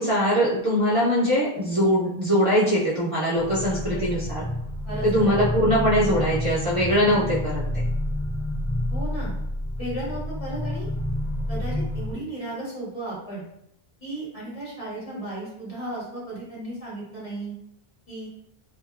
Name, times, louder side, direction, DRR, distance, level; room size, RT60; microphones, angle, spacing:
voice 1, 0.0-4.4 5.0-7.6, equal, 40° right, -9 dB, 0.6 m, -22 dB
sound 1, 3.4-12.1, left 1 dB, 10° left, 0.6 m, -29 dB
voice 2, 3.7-4.0 4.9-5.3 8.9-9.3 9.8-10.9 11.5-13.4 14.0-17.5 18.1-18.3, right 1 dB, 40° left, -8 dB, 0.9 m, -35 dB
2.6 x 2.3 x 2.4 m, 0.76 s
omnidirectional pair, 1.0 m